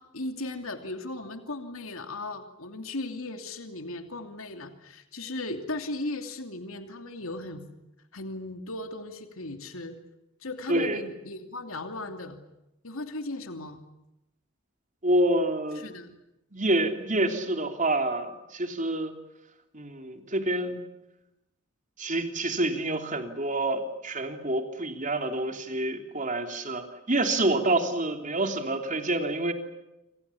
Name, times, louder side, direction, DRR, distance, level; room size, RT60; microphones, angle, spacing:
voice 1, 0.0-7.6 8.1-10.0 10.4-12.4 12.8-13.8 15.7-16.1, left 2 dB, 75° left, 6 dB, 2.9 m, -37 dB
voice 2, 10.7-11.0 15.0-15.8 16.5-19.1 19.7-20.8 22.0-29.5, right 1 dB, 35° right, 6 dB, 3.3 m, -27 dB
27.5 x 27.0 x 7.2 m, 0.92 s
head